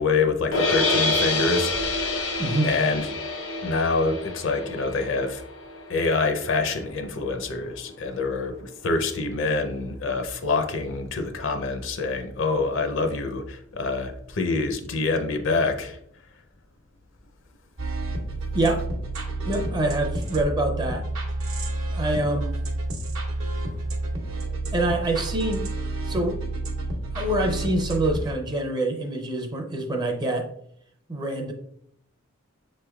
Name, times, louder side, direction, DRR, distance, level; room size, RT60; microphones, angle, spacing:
voice 1, 0.0-3.1 3.6-5.4 5.9-16.0, left 3 dB, 60° left, 6 dB, 0.5 m, -26 dB
sound 1, 0.5-6.7, left 2 dB, 80° left, 0.9 m, -27 dB
sound 2, 17.8-28.3, right 2 dB, 70° right, 0.9 m, -30 dB
voice 2, 19.5-21.0 21.9-22.6 24.7-25.7 26.0-26.4 27.1-30.5 31.1-31.5, right 1 dB, 20° right, 3 dB, 0.5 m, -25 dB
6.7 x 3.2 x 2.3 m, 0.69 s
head